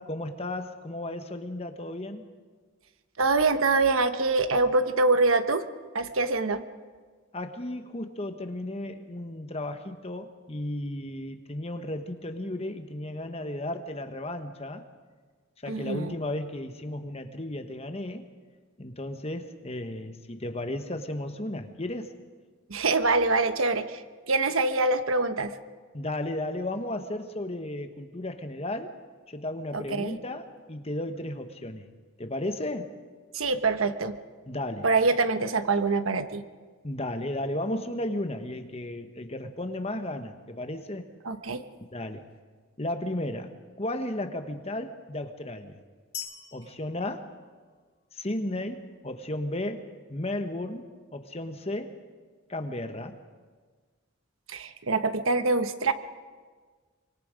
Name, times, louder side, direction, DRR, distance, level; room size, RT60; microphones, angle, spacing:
voice 1, 0.0-2.3 7.3-14.8 15.6-18.3 18.8-22.1 25.9-29.0 29.3-31.9 32.2-32.9 34.5-34.9 36.8-41.1 41.9-42.3 42.8-45.8 46.5-47.3 48.1-52.0 52.5-53.2, left 1 dB, 30° left, 7 dB, 1.2 m, -34 dB
voice 2, 3.2-5.6 5.9-6.6 15.7-16.1 22.7-25.6 29.7-30.1 33.3-34.2 34.8-36.4 41.2-41.6 54.5-55.9, right 3 dB, 80° right, 9 dB, 1.2 m, -25 dB
sound 1, 46.1-48.1, left 9 dB, 50° left, 2.8 m, -43 dB
25.0 x 24.5 x 5.2 m, 1.5 s
head